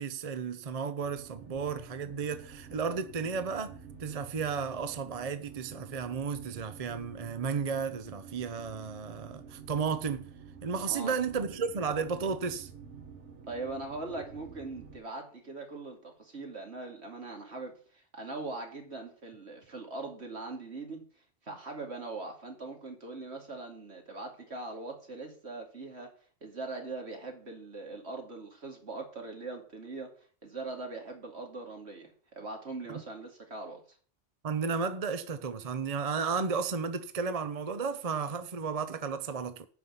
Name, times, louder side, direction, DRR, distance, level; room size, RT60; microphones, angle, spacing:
voice 1, 0.0-10.3 10.6-12.7 32.9-33.0 34.4-39.7, right 5 dB, 40° right, 0.7 m, -33 dB
sound 1, 1.0-15.0, right 6 dB, 90° right, 1.7 m, -50 dB
voice 2, 13.5-21.0 21.4-26.1 26.4-30.1 30.4-34.0, right 3 dB, 70° right, 2.8 m, -41 dB
9.2 x 5.7 x 7.9 m
omnidirectional pair, 1.2 m